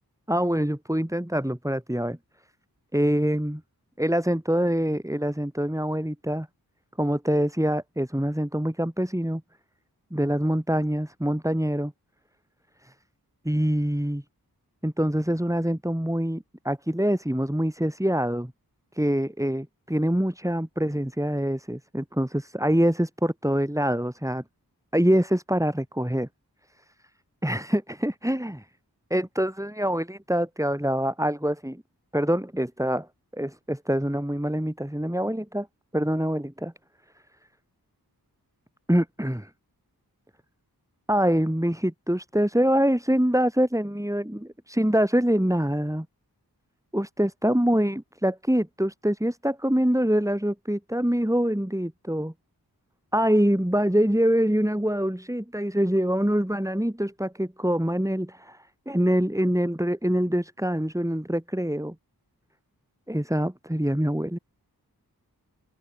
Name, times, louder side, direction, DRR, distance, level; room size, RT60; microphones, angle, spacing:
voice 1, 0.3-2.2 2.9-3.6 4.0-6.5 7.0-9.4 10.1-11.9 12.8-12.9 13.4-14.2 14.8-18.5 18.9-24.4 24.9-26.3 27.4-28.6 29.1-31.8 32.1-33.1 33.3-35.7 35.9-36.7 38.9-39.5 41.1-46.1 46.9-52.3 53.1-61.9 63.1-64.4, equal, 10° right, 6.5 m, -25 dB
cardioid pair, 40°, 38 cm